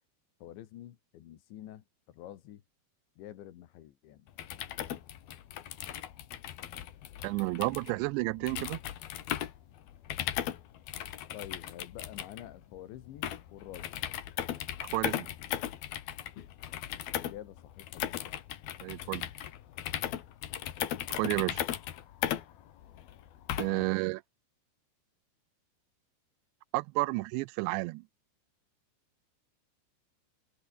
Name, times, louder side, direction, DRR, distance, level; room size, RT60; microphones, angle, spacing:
voice 1, 0.4-2.6 3.2-4.3 11.3-14.0 17.2-18.4 23.6-23.9, left 12 dB, 80° left, 4.1 m, -48 dB
sound 1, 4.3-23.9, left 11 dB, 65° left, 3.3 m, -37 dB
voice 2, 7.2-8.8 14.9-15.3 18.8-19.3 21.1-21.6 23.6-24.2 26.7-28.0, right 23 dB, 85° right, 2.7 m, -31 dB
omnidirectional pair, 5.2 m